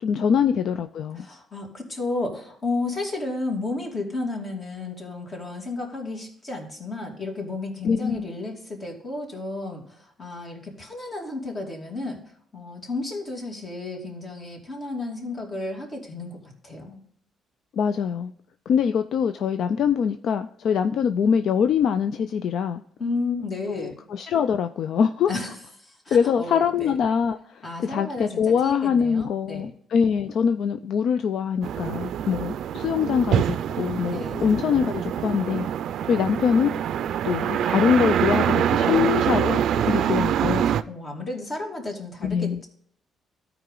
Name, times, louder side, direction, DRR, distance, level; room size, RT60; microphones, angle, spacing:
voice 1, 0.0-1.3 7.8-8.2 17.7-18.3 18.7-22.8 23.7-25.3 26.1-35.7 36.0-36.7 37.2-40.7 42.2-42.6, left 7 dB, 70° left, 9 dB, 0.4 m, -23 dB
voice 2, 1.2-12.2 12.5-17.0 23.0-24.0 25.3-25.5 25.8-26.9 27.6-29.7 34.1-34.4 38.7-39.4 39.9-42.7, left 2 dB, 40° left, 0 dB, 2.7 m, -33 dB
sound 1, 31.6-40.8, right 9 dB, 75° right, 0.4 m, -25 dB
13.0 x 4.8 x 3.8 m, 0.64 s
cardioid pair, 90°, 0 cm